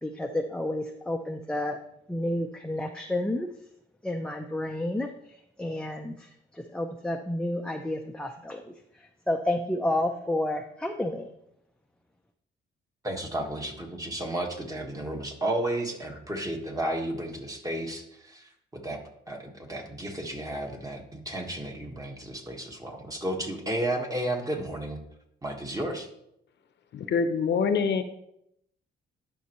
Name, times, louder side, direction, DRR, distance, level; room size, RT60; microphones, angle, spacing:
voice 1, 0.0-1.8 2.1-3.5 4.0-5.1 5.6-6.1 6.7-8.6 9.3-11.2, left 1 dB, 5° left, 3 dB, 0.5 m, -30 dB
voice 2, 13.0-18.4 18.7-19.0 19.3-25.0 25.4-26.1, right 1 dB, 15° right, 2 dB, 1.5 m, -32 dB
voice 3, 26.9-28.0, left 5 dB, 60° left, 9 dB, 0.8 m, -25 dB
11.0 x 5.4 x 3.0 m, 0.78 s
cardioid pair, 90°, 20 cm